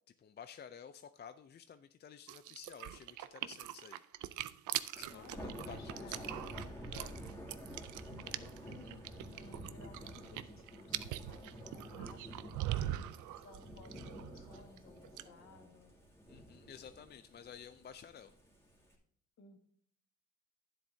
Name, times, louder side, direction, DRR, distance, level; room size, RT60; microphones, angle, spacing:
voice 1, 0.2-4.0 5.0-6.2 6.9-7.1 16.3-18.3, left 7 dB, 35° left, 10 dB, 0.5 m, -52 dB
sound 1, 2.3-14.8 15.0-15.2, right 13 dB, 80° right, 0.6 m, -42 dB
Thunder / Rain, 4.9-18.9, equal, 10° left, 2.6 m, -50 dB
voice 2, 5.1-6.7 8.1-12.7 13.4-15.9 19.4-19.6, left 4 dB, 65° left, 5 dB, 1.8 m, -58 dB
11.5 x 10.0 x 2.7 m, 0.63 s
cardioid pair, 90°, 30 cm